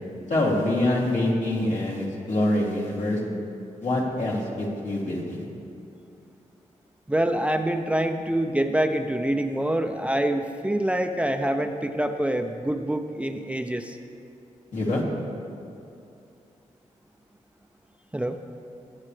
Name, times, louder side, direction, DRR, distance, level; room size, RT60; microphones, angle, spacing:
voice 1, 0.3-3.2 3.8-5.4 14.7-15.0, left 1 dB, 70° left, -4 dB, 2.7 m, -25 dB
voice 2, 7.1-14.0 18.1-18.4, right 1 dB, 10° right, 5 dB, 0.5 m, -26 dB
20.0 x 8.7 x 3.3 m, 2.5 s
cardioid pair, 85°, 13 cm